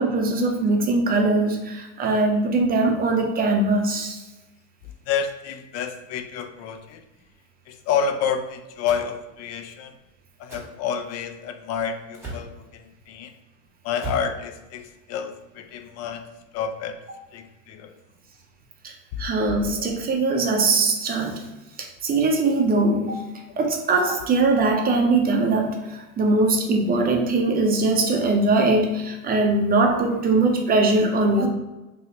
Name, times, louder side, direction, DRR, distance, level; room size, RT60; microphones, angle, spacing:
voice 1, 0.0-4.2 18.8-18.9 19.2-21.5 21.8-31.5, right 3 dB, 25° right, 2 dB, 0.6 m, -21 dB
voice 2, 5.1-7.0 7.7-9.9 10.4-13.3 13.8-16.3 16.5-17.0 17.3-17.9, left 7 dB, 40° left, 8 dB, 0.4 m, -29 dB
Dropping Compost Bag on Floor, 8.8-9.1 10.5-10.7 12.1-12.5 13.9-14.3, right 2 dB, 5° right, 1.4 m, -35 dB
3.0 x 2.9 x 2.8 m, 1.1 s
hypercardioid pair, 95°, 40 cm